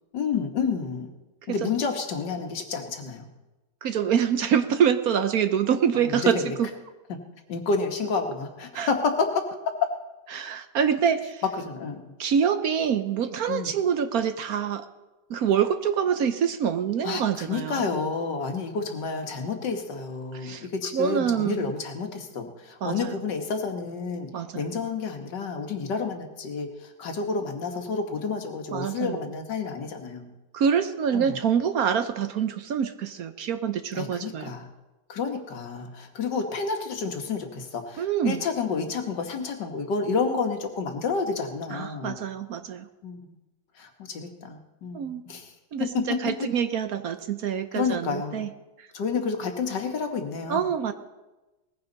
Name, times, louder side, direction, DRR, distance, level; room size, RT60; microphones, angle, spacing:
voice 1, 0.1-1.1 1.5-3.3 5.9-6.4 7.5-9.3 11.6-12.1 13.5-13.7 17.0-24.3 24.5-30.3 31.1-31.4 33.9-34.7 35.1-42.2 43.0-43.2 43.8-45.5 45.8-46.5 47.8-48.4 48.9-50.7, left 5 dB, 75° left, 5 dB, 2.0 m, -30 dB
voice 2, 3.8-6.7 8.7-8.9 10.3-11.4 12.2-14.9 15.3-17.9 20.3-20.7 20.9-21.7 22.8-23.2 24.3-24.6 28.7-29.2 30.5-34.5 38.0-38.4 41.7-42.8 44.9-45.2 45.7-48.5 50.5-50.9, right 8 dB, 65° right, 10 dB, 1.1 m, -25 dB
19.5 x 15.0 x 4.0 m, 1.1 s
omnidirectional pair, 1.9 m